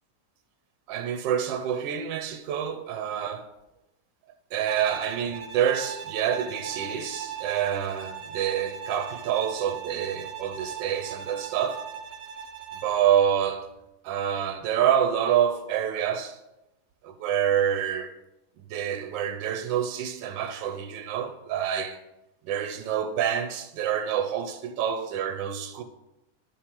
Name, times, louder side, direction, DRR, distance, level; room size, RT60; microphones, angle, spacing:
voice 1, 0.9-3.5 4.5-11.8 12.8-13.7 14.0-16.4 17.0-18.1 18.6-22.0 22.4-25.8, right 9 dB, 90° right, 1.3 m, -27 dB
Bowed string instrument, 4.7-13.0, right 7 dB, 75° right, 1.2 m, -39 dB
11.5 x 4.9 x 2.9 m
omnidirectional pair, 2.0 m